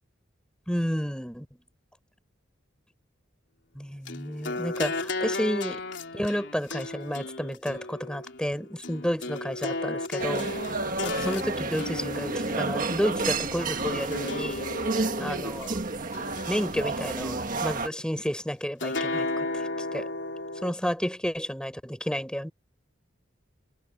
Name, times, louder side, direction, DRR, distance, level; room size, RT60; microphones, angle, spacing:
voice 1, 0.7-1.5 3.7-5.8 6.1-10.5 11.0-14.6 15.2-15.7 16.5-20.1 20.6-22.5, equal, 5° left, 5.9 m, -31 dB
sound 1, 4.1-13.5 14.1-15.7 16.1-17.3 18.8-20.7, left 2 dB, 70° left, 3.7 m, -34 dB
sound 2, 10.2-17.9, right 3 dB, 45° right, 1.6 m, -31 dB
head